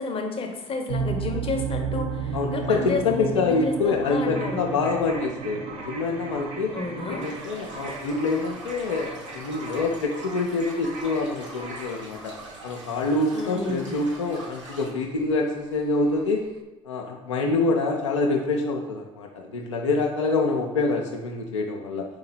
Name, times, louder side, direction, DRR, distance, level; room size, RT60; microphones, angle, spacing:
voice 1, 0.0-4.7 6.7-7.3 13.3-13.9, left 3 dB, 35° left, 4 dB, 0.8 m, -31 dB
sound 1, 0.9-16.6, right 6 dB, 65° right, 0.4 m, -36 dB
voice 2, 2.3-6.7 7.1-12.3 12.6-16.4 16.8-22.1, left 3 dB, 80° left, 0 dB, 0.4 m, -26 dB
sound 2, 4.4-12.0, right 2 dB, 50° right, 0.9 m, -41 dB
sound 3, 7.2-14.9, right 1 dB, 85° right, 0.8 m, -44 dB
4.4 x 2.7 x 4.0 m, 1.0 s
figure-of-eight pair, 55°, 15 cm